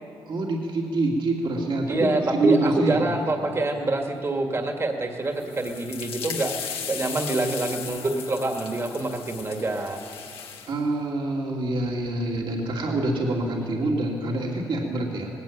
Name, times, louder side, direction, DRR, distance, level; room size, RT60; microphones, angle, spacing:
voice 1, 0.3-3.1 10.7-15.3, right 2 dB, 65° right, -1 dB, 2.8 m, -25 dB
voice 2, 1.9-10.0, right 2 dB, 30° right, 3 dB, 1.9 m, -26 dB
sound 1, 5.3-10.8, left 7 dB, 85° left, 1.8 m, -36 dB
19.5 x 17.0 x 8.9 m, 2.7 s
cardioid pair, 95°, 9 cm